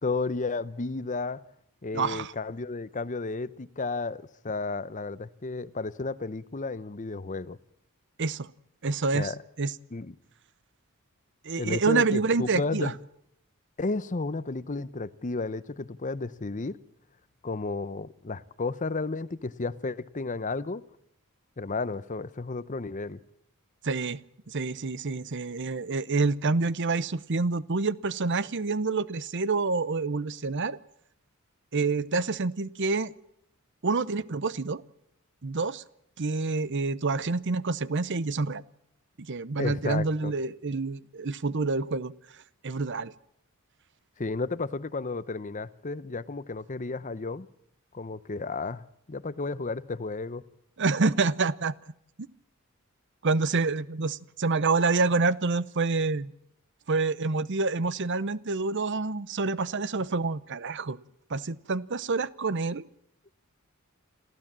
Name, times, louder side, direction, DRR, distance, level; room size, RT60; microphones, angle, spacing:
voice 1, 0.0-1.4 1.8-7.6 9.1-9.4 9.9-10.1 11.6-13.0 13.8-16.8 17.4-20.8 21.6-23.2 39.6-40.3 44.2-47.5 47.9-50.4, left 3 dB, 35° left, 16 dB, 0.7 m, -32 dB
voice 2, 1.9-2.3 8.2-8.5 8.8-9.3 9.6-9.7 11.4-12.9 23.8-24.2 24.5-30.8 31.7-33.1 33.8-34.8 35.4-35.8 36.2-38.6 39.3-42.1 42.6-43.1 50.8-51.7 53.2-56.3 56.9-61.0 61.3-62.8, right 3 dB, 55° right, 18 dB, 0.7 m, -27 dB
27.0 x 14.5 x 7.5 m, 0.75 s
head